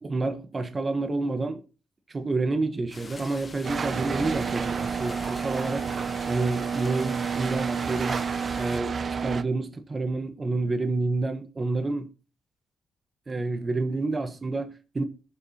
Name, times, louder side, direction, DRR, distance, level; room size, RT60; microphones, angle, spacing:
voice 1, 0.0-1.6 2.1-5.9 6.3-8.2 8.5-12.1 13.3-15.0, right 3 dB, 35° right, 1.1 m, -29 dB
sound 1, 2.9-8.8, left 3 dB, 40° left, 1.7 m, -45 dB
sound 2, 3.6-9.4, right 6 dB, 50° right, 0.7 m, -29 dB
21.5 x 7.3 x 2.8 m
cardioid pair, 65°, 0 cm